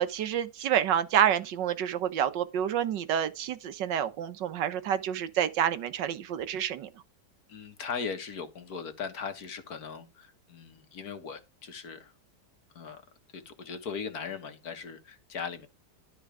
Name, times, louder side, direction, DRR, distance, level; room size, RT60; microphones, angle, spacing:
voice 1, 0.0-6.9, right 9 dB, 85° right, 1.6 m, -28 dB
voice 2, 7.5-12.1 12.7-13.0 13.3-15.7, left 6 dB, 60° left, 1.8 m, -39 dB
12.5 x 4.6 x 4.9 m
omnidirectional pair, 1.9 m